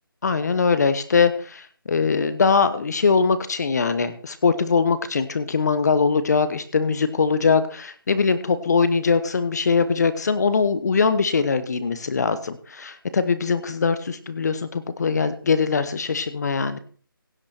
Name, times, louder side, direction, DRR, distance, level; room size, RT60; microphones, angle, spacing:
voice 1, 0.2-16.8, left 5 dB, 50° left, 13 dB, 1.2 m, -22 dB
16.5 x 9.6 x 4.4 m, 0.42 s
figure-of-eight pair, 160°, 12 cm